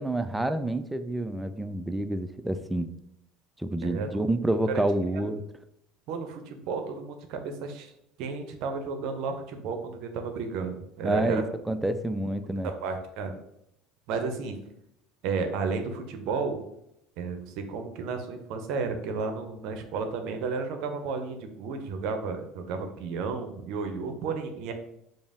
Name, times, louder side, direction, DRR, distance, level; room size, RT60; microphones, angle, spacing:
voice 1, 0.0-2.9 3.6-5.4 11.0-12.7, right 1 dB, 10° right, 10 dB, 0.3 m, -28 dB
voice 2, 6.1-7.9 8.2-11.4 12.8-13.4 14.1-14.6 15.2-16.6 17.2-24.7, right 4 dB, 60° right, 6 dB, 0.6 m, -32 dB
5.0 x 2.0 x 3.5 m, 0.78 s
hypercardioid pair, 70°, 0 cm